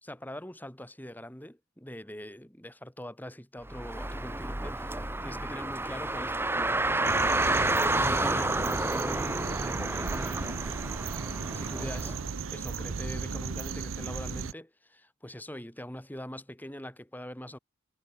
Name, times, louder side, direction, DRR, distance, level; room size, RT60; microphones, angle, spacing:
voice 1, 0.0-7.3 8.0-10.8 11.5-17.6, left 1 dB, 10° left, 3.0 m, -43 dB
Car, 3.7-12.2, right 2 dB, 10° right, 2.0 m, -30 dB
sound 1, 7.0-14.5, right 5 dB, 80° right, 0.7 m, -36 dB
head